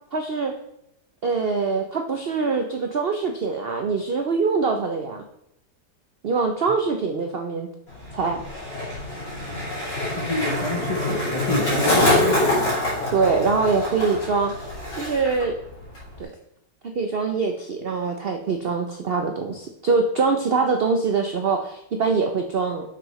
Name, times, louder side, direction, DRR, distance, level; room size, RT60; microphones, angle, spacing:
voice 1, 0.1-0.5 1.2-5.2 6.2-7.7 8.1-8.4 13.1-14.7 14.9-15.6 16.2-16.3 16.9-22.8, right 4 dB, 90° right, 4 dB, 0.5 m, -23 dB
Skateboard, 7.9-15.4 15.7-16.2, left 1 dB, 85° left, 3.6 m, -25 dB
voice 2, 10.1-12.3, left 2 dB, 55° left, 0 dB, 0.3 m, -28 dB
7.4 x 6.2 x 3.1 m, 0.82 s
omnidirectional pair, 1.9 m